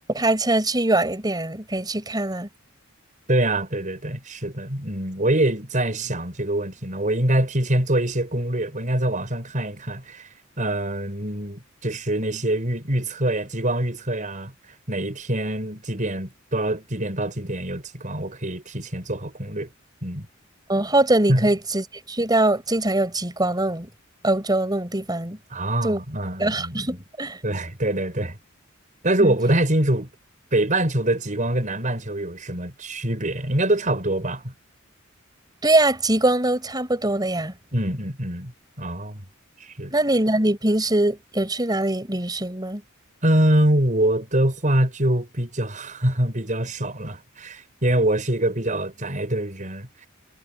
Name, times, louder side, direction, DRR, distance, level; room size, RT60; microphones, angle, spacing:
voice 1, 0.1-2.5 20.7-23.9 24.2-25.4 25.8-26.0 26.4-27.4 29.2-29.4 35.6-37.5 39.9-42.8, right 1 dB, 20° right, 5.5 m, -22 dB
voice 2, 3.3-10.3 10.6-14.5 14.9-19.7 20.0-20.3 21.3-21.5 25.5-27.0 27.4-28.4 29.0-30.1 30.5-34.5 37.7-38.5 38.8-39.2 39.6-39.9 43.2-50.1, right 1 dB, 40° right, 6.1 m, -24 dB
head